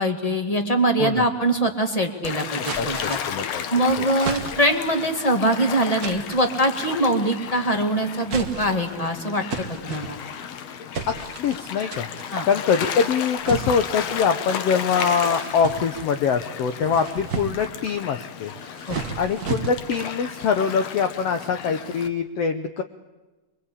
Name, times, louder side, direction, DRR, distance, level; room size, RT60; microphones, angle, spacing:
voice 1, 0.0-3.2 3.7-9.4 9.8-10.2 12.3-12.5 18.9-19.0, right 1 dB, 15° left, 4 dB, 1.2 m, -23 dB
Gull seagull / Waves surf, 2.2-22.1, left 8 dB, 60° left, 1.8 m, -33 dB
sound 1, 2.6-3.5 4.2-4.9 6.0-6.5 7.4-7.8 8.2-8.9 9.5-10.5 10.9-11.6 11.9-12.3 13.4-14.3 14.9-16.2 16.7-17.8 18.5-20.1, right 6 dB, 80° right, 0.8 m, -34 dB
voice 2, 2.8-3.6 4.0-4.1 11.1-12.1 12.4-18.5 19.2-22.8, left 6 dB, 90° left, 7 dB, 1.3 m, -24 dB
25.0 x 23.0 x 8.5 m, 1.2 s
omnidirectional pair, 4.1 m